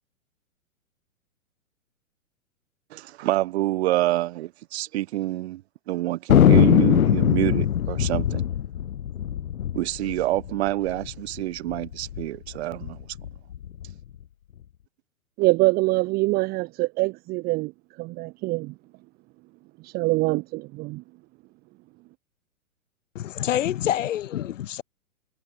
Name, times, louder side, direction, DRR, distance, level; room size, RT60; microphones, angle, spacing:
voice 1, 2.9-8.4 9.8-13.0, right 16 dB, 50° right, 2.2 m, -27 dB
Thunder, 6.3-11.1 11.4-11.5 11.7-12.2 12.7-13.9, left 10 dB, 75° left, 0.9 m, -21 dB
voice 2, 15.4-17.7 18.0-18.7 19.8-21.0, right 22 dB, 20° right, 0.8 m, -24 dB
voice 3, 23.1-24.8, left 11 dB, 60° left, 1.5 m, -27 dB
hypercardioid pair, 125°, 42 cm